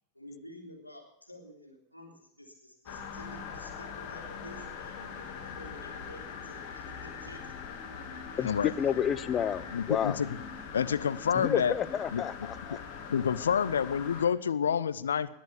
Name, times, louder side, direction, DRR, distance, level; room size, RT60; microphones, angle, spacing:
voice 1, 0.1-5.0 5.5-7.5 8.3-9.0, equal, 90° left, -1 dB, 3.5 m, -51 dB
sound 1, 2.9-14.3, left 6 dB, 40° left, 2.3 m, -42 dB
voice 2, 8.4-10.2 11.3-12.8, left 9 dB, 25° left, 16 dB, 0.6 m, -30 dB
voice 3, 9.7-10.4 10.7-11.7 12.1-12.5 13.1-15.3, left 7 dB, 70° left, 15 dB, 0.7 m, -28 dB
20.0 x 7.9 x 6.9 m, 0.76 s
figure-of-eight pair, 90°, 0 cm